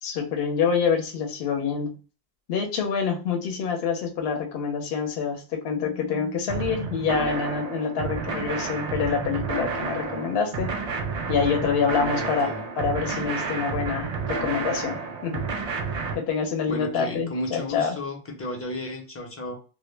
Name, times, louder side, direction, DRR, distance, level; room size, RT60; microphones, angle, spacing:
voice 1, 0.0-2.0 2.5-10.7 11.3-12.5 12.8-15.5 16.1-18.0, left 6 dB, 70° left, 4 dB, 0.8 m, -26 dB
sound 1, 6.5-16.1, right 4 dB, 50° right, 0.5 m, -30 dB
voice 2, 12.1-12.6 16.7-19.5, left 1 dB, 20° left, 1 dB, 0.4 m, -33 dB
2.1 x 2.1 x 3.1 m, 0.35 s
omnidirectional pair, 1.1 m